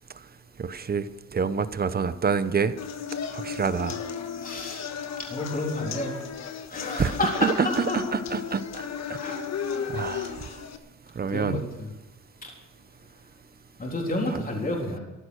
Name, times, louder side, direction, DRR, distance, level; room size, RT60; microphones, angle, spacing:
voice 1, 0.6-1.1 1.3-2.7 3.3-4.0 7.0-7.1 7.4-9.2 9.9-10.3 11.2-11.6, right 5 dB, 30° right, 13 dB, 0.9 m, -27 dB
sound 1, 2.8-10.8, left 7 dB, 60° left, 1.5 m, -35 dB
voice 2, 4.4-4.9 5.3-6.2 6.7-8.0 8.7-8.8 9.2-9.9 11.3-11.9 12.4-12.5 13.8-15.0, left 2 dB, 30° left, 0 dB, 3.6 m, -30 dB
14.5 x 11.5 x 6.4 m, 1.0 s
cardioid pair, 90°, 30 cm